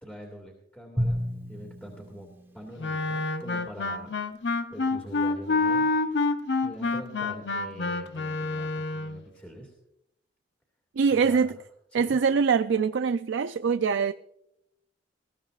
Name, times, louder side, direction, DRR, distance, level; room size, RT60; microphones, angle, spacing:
voice 1, 0.0-4.2 4.7-9.7 11.1-11.5 11.9-12.2, equal, 10° left, 2.2 m, -44 dB
Drum, 1.0-3.4, equal, 15° right, 1.2 m, -33 dB
Wind instrument woodwind instrument, 2.8-9.2, left 3 dB, 70° left, 0.8 m, -27 dB
voice 2, 11.0-11.5 11.9-14.1, right 5 dB, 85° right, 0.4 m, -23 dB
20.5 x 14.5 x 2.4 m
head